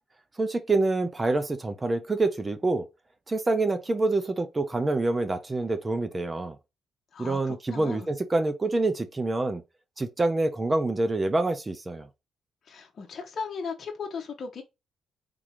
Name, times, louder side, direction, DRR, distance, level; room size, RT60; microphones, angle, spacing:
voice 1, 0.4-2.9 3.3-6.6 7.2-9.6 10.0-12.1, right 2 dB, 25° right, 0.6 m, -26 dB
voice 2, 7.1-8.1 12.7-14.6, left 5 dB, 50° left, 1.0 m, -37 dB
3.8 x 2.9 x 4.8 m
cardioid pair, 90°, 0 cm